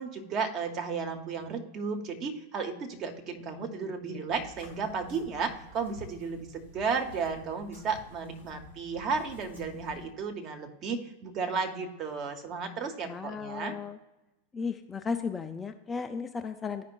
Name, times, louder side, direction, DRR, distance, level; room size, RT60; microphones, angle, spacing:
voice 1, 0.0-13.8, right 5 dB, 35° right, 5 dB, 0.9 m, -34 dB
voice 2, 3.6-4.2 13.0-14.0 14.5-16.8, left 5 dB, 15° left, 7 dB, 0.4 m, -35 dB
sound 1, 4.3-10.1, left 1 dB, 85° right, 2.0 m, -51 dB
12.5 x 5.0 x 2.4 m, 0.98 s
figure-of-eight pair, 90°, 0 cm